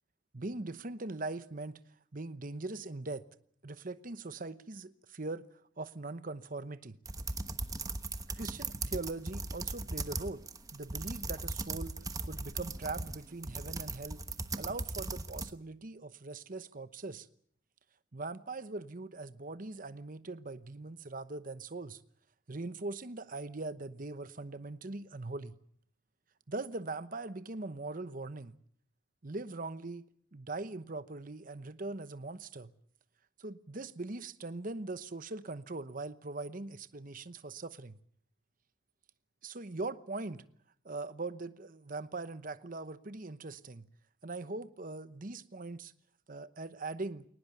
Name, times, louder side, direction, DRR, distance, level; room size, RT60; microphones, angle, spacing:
voice 1, 0.3-1.8 2.1-3.2 3.6-5.5 5.8-7.0 8.3-10.4 10.7-14.2 14.6-17.3 18.1-22.0 22.5-25.5 26.5-28.5 29.2-32.7 33.4-38.0 39.4-40.4 40.8-43.9 44.2-45.9 46.3-47.3, right 3 dB, 45° right, 1.0 m, -41 dB
sound 1, 7.1-15.5, right 3 dB, 20° right, 1.2 m, -38 dB
22.0 x 19.5 x 9.0 m
head